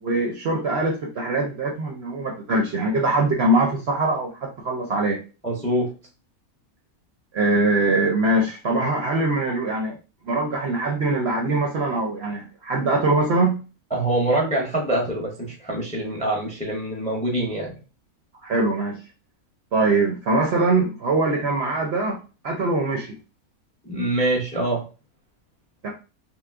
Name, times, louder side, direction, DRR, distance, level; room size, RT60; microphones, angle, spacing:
voice 1, 0.0-5.2 7.3-10.0 10.2-13.6 18.4-19.0 19.7-23.2 25.8-25.9, right 2 dB, 60° right, 0 dB, 0.7 m, -22 dB
voice 2, 5.4-5.9 13.9-17.7 23.8-24.8, right 1 dB, 10° left, -1 dB, 0.5 m, -24 dB
3.0 x 2.0 x 3.4 m, 0.33 s
omnidirectional pair, 1.5 m